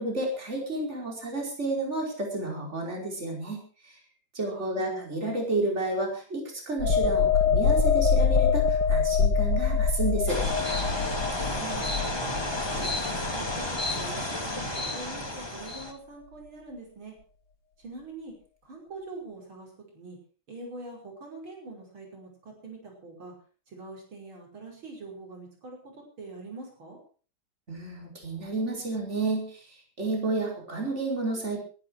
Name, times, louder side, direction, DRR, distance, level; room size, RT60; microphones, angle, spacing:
voice 1, 0.0-4.0 4.3-10.4 27.7-29.6 30.0-31.6, right 2 dB, 35° right, 0 dB, 5.3 m, -31 dB
voice 2, 4.5-5.2 11.5-12.3 12.7-17.2 17.8-18.3 18.6-20.2 20.5-23.3 23.7-27.0, right 3 dB, 85° right, 0 dB, 6.2 m, -44 dB
sound 1, 6.8-14.2 14.6-14.8, left 5 dB, 65° left, 2.7 m, -25 dB
sound 2, 10.3-15.9, left 1 dB, 15° left, 2.1 m, -31 dB
21.5 x 11.0 x 4.8 m, 0.39 s
omnidirectional pair, 2.2 m